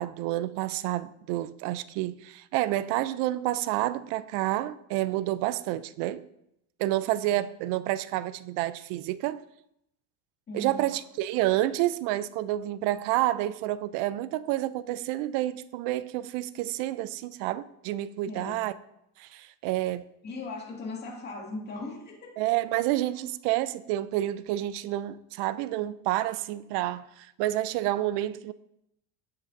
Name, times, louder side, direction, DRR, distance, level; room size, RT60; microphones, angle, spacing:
voice 1, 0.0-6.3 6.8-9.4 10.5-18.7 19.2-20.1 22.4-28.5, right 15 dB, 70° right, 0.5 m, -29 dB
voice 2, 10.5-10.9 18.3-18.7 20.2-22.4 23.1-23.2, left 2 dB, 25° left, 2.0 m, -38 dB
16.0 x 6.7 x 2.6 m
cardioid pair, 180°, 42 cm